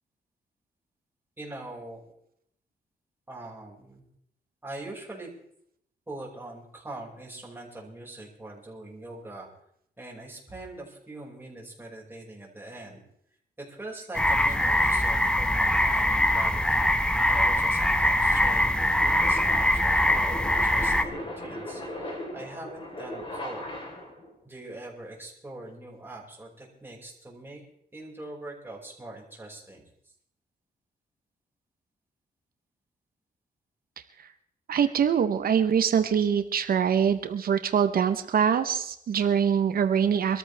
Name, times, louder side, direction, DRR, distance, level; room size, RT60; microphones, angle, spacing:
voice 1, 1.4-2.0 3.3-4.0 4.6-5.3 6.1-9.5 10.0-13.0 13.6-16.7 17.3-23.7 24.5-27.6 27.9-29.8, right 2 dB, 15° right, -3 dB, 5.5 m, -42 dB
sound 1, 14.1-21.0, left 1 dB, 5° left, 1.0 m, -23 dB
sound 2, 16.7-24.3, left 1 dB, 35° left, 4.0 m, -39 dB
voice 2, 34.7-40.4, right 7 dB, 65° right, 9 dB, 1.0 m, -24 dB
25.0 x 13.5 x 3.4 m, 0.72 s
cardioid pair, 115°, 16 cm